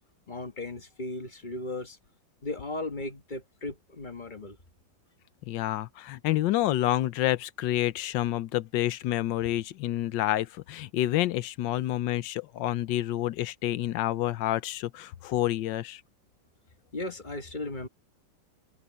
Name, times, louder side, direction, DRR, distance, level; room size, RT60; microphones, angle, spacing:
voice 1, 0.3-2.0 2.4-4.6 16.9-17.9, left 2 dB, 25° left, 1.4 m, -36 dB
voice 2, 5.5-16.0, left 14 dB, 75° left, 1.4 m, -28 dB
omnidirectional pair, 2.0 m